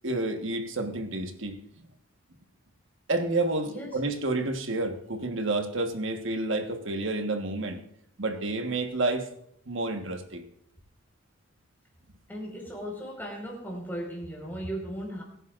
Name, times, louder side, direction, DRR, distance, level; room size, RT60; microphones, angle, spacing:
voice 1, 0.0-1.6 3.1-7.8 8.2-9.3 9.7-10.4, right 2 dB, 70° right, 6 dB, 1.4 m, -29 dB
voice 2, 3.7-4.0 12.3-15.2, equal, 10° left, -2 dB, 4.8 m, -37 dB
23.5 x 10.5 x 2.5 m, 0.70 s
head